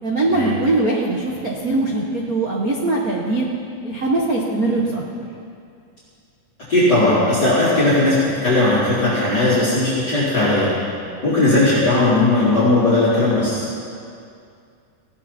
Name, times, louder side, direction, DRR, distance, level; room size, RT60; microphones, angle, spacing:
voice 1, 0.0-3.5 3.8-5.0, right 2 dB, 75° right, -2 dB, 0.8 m, -21 dB
voice 2, 6.7-8.2 8.4-10.8 11.2-13.7, left 2 dB, 30° left, -11 dB, 4.4 m, -17 dB
19.0 x 16.5 x 4.4 m, 2.4 s
omnidirectional pair, 3.9 m